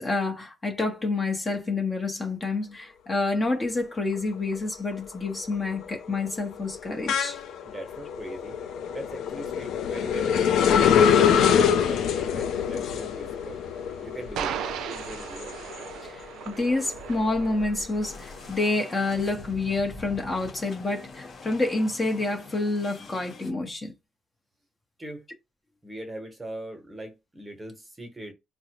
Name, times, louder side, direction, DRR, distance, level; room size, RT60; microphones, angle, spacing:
voice 1, 0.0-7.4 16.0-16.2 16.5-23.9, left 3 dB, 25° left, 0.9 m, -28 dB
sound 1, 4.2-4.6 5.0-16.2 16.6-18.3, left 8 dB, 75° left, 0.5 m, -25 dB
voice 2, 7.6-8.6 8.9-10.5 10.9-13.6 14.0-14.6 14.9-15.6 25.0-25.3 25.8-28.3, right 1 dB, 20° right, 1.0 m, -40 dB
sound 2, 11.5-18.9, right 9 dB, 80° right, 0.4 m, -38 dB
sound 3, 18.0-23.5, left 3 dB, 50° left, 1.1 m, -44 dB
3.8 x 2.1 x 2.9 m
cardioid pair, 110°, 0 cm